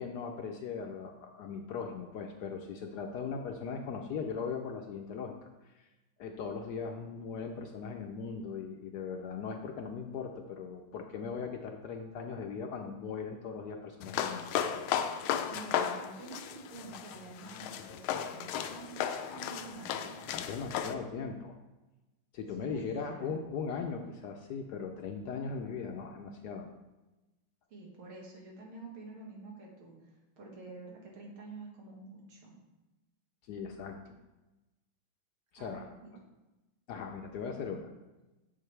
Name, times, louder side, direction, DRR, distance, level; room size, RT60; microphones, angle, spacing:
voice 1, 0.0-5.3 5.7-5.9 6.2-14.5 20.3-21.5 22.3-26.7 33.5-34.1 35.5-35.9 36.9-37.9, left 5 dB, 70° left, 4 dB, 1.0 m, -39 dB
sound 1, 14.0-20.9, left 9 dB, 85° left, 1.4 m, -35 dB
voice 2, 15.5-20.4 22.6-23.4 27.7-32.6 35.6-36.1, right 3 dB, 90° right, -1 dB, 2.5 m, -48 dB
7.6 x 7.3 x 3.3 m, 1.1 s
omnidirectional pair, 2.2 m